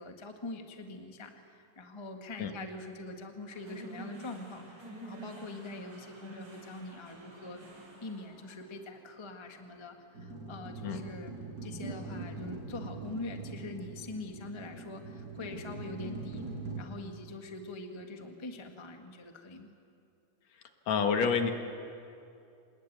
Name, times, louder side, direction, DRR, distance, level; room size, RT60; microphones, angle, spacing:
voice 1, 0.0-7.6 8.0-16.4 16.8-19.7, left 2 dB, 20° left, 4 dB, 0.8 m, -44 dB
sound 1, 3.5-11.9, right 2 dB, 75° right, 7.0 m, -50 dB
sound 2, 10.2-16.8, right 3 dB, 30° right, 5.3 m, -42 dB
voice 2, 20.9-21.5, left 6 dB, 65° left, 5 dB, 2.6 m, -27 dB
26.5 x 20.5 x 9.2 m, 2.6 s
omnidirectional pair, 3.6 m